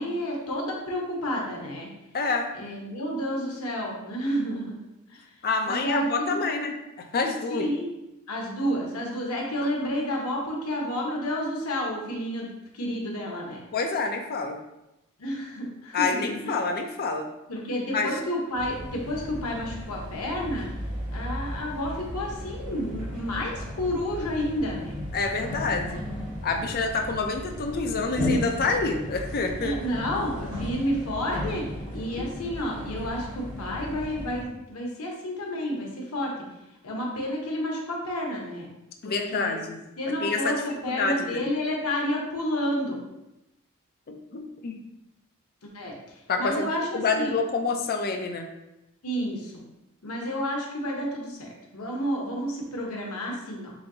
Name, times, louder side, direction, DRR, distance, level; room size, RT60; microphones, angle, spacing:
voice 1, 0.0-1.9 2.6-4.8 5.1-5.2 5.6-6.4 7.5-7.9 8.3-13.6 15.2-16.5 17.5-20.7 21.1-25.0 29.6-36.3 36.8-38.7 39.0-39.5 40.0-43.0 45.6-45.9 46.4-47.3 49.0-49.6 50.0-53.7, equal, 85° left, -1 dB, 1.1 m, -30 dB
voice 2, 2.1-2.5 5.4-7.7 9.6-9.7 13.7-14.6 15.9-17.3 17.9-18.2 25.1-26.0 26.4-29.8 32.2-32.3 39.0-40.6 40.9-41.4 44.1-44.9 46.3-48.5, left 4 dB, 45° left, 3 dB, 0.5 m, -28 dB
sound 1, 18.5-34.4, left 1 dB, 40° right, 1.6 m, -35 dB
6.9 x 2.7 x 2.7 m, 0.91 s
head